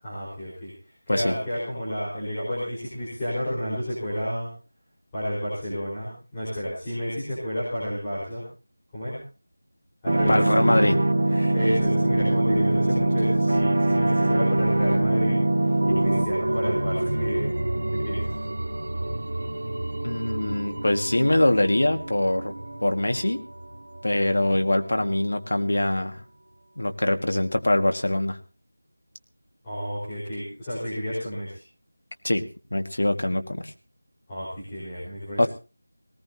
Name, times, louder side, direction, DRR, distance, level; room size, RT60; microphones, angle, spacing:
voice 1, 0.0-4.5 5.1-8.4 8.9-9.2 10.0-10.7 11.3-17.5 17.9-18.4 29.6-31.6 34.3-35.5, equal, 10° left, -11 dB, 4.6 m, -31 dB
sound 1, 10.1-16.2, right 1 dB, 45° right, 2.1 m, -22 dB
voice 2, 10.3-11.0 20.0-22.5 22.8-23.4 24.0-26.2 26.8-28.4 32.2-32.4 32.7-33.7 35.4-35.5, left 1 dB, 80° left, 5 dB, 1.8 m, -23 dB
sound 2, 15.8-25.2 25.5-25.6, right 1 dB, 60° right, 1.7 m, -31 dB
20.0 x 18.5 x 2.8 m, 0.34 s
figure-of-eight pair, 180°, 0 cm